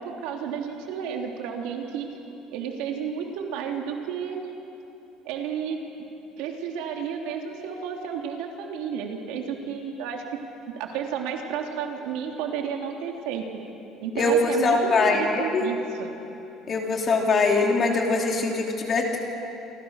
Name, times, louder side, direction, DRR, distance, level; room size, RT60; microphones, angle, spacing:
voice 1, 0.0-2.1 2.5-4.4 5.2-5.8 6.4-10.2 10.7-13.4 14.0-16.1, right 7 dB, 90° right, 1 dB, 3.3 m, -31 dB
voice 2, 14.1-15.7 16.7-19.2, left 3 dB, 25° left, 1 dB, 3.0 m, -22 dB
28.0 x 25.0 x 6.6 m, 2.9 s
cardioid pair, 180°, 0 cm